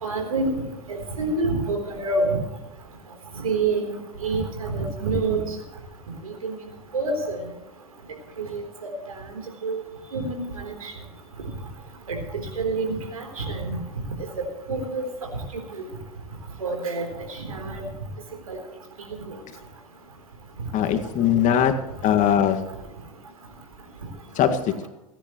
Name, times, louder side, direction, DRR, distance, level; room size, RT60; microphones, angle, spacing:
voice 1, 0.0-0.5 0.9-2.4 3.4-4.0 4.2-5.4 6.4-6.6 6.9-7.4 8.4-8.9 9.6-9.8 10.1-10.9 12.1-12.2 12.6-13.8 14.7-15.0 15.8-15.9 16.6-17.1 17.4-17.8 18.5-18.6, right 3 dB, 90° right, 4 dB, 3.8 m, -27 dB
voice 2, 20.7-21.7 22.0-22.6 24.4-24.9, left 9 dB, 45° left, 6 dB, 1.9 m, -20 dB
29.5 x 10.0 x 3.1 m, 1.0 s
hypercardioid pair, 85°, 18 cm